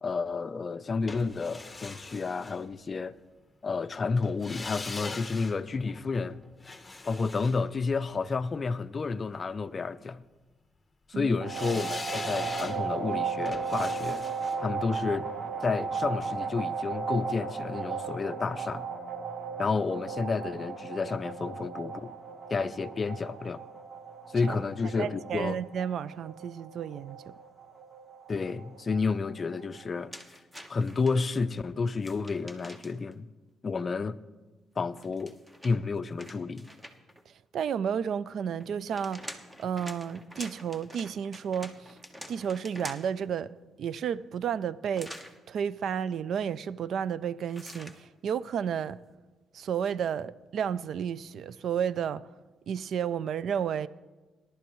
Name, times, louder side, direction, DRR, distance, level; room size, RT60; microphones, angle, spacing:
voice 1, 0.0-3.2 3.6-6.4 7.1-10.2 11.1-14.2 14.6-15.3 15.6-18.8 19.6-22.1 22.5-23.6 24.3-25.6 28.3-30.1 30.7-33.3 33.6-34.2 34.8-35.3 35.6-36.7, left 4 dB, 35° left, 0.5 m, -30 dB
sound 1, 1.1-3.2 4.2-8.5 11.5-16.5 16.8-16.9, left 3 dB, 20° left, 1.0 m, -43 dB
sound 2, 11.4-30.0, right 5 dB, 45° right, 1.3 m, -36 dB
voice 2, 25.0-27.3 37.3-39.3 39.6-42.0 42.3-45.2 45.5-49.0 49.5-52.2 52.7-53.9, right 8 dB, 65° right, 0.3 m, -32 dB
sound 3, 30.1-31.1 32.0-33.1 34.9-37.2 38.6-43.2 44.9-45.4 47.5-48.0, equal, 10° right, 1.1 m, -46 dB
18.5 x 11.5 x 3.1 m
cardioid pair, 90°, 0 cm